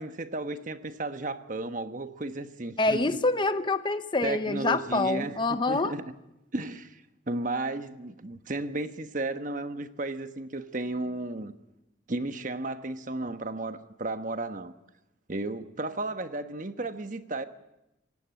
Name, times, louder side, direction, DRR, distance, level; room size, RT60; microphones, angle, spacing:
voice 1, 0.0-3.2 4.2-6.0 6.5-7.0 7.3-11.5 12.1-14.7 15.3-17.4, right 2 dB, 40° right, 9 dB, 1.2 m, -34 dB
voice 2, 2.8-5.9, left 2 dB, 25° left, 11 dB, 0.8 m, -26 dB
27.0 x 17.0 x 9.0 m, 0.90 s
head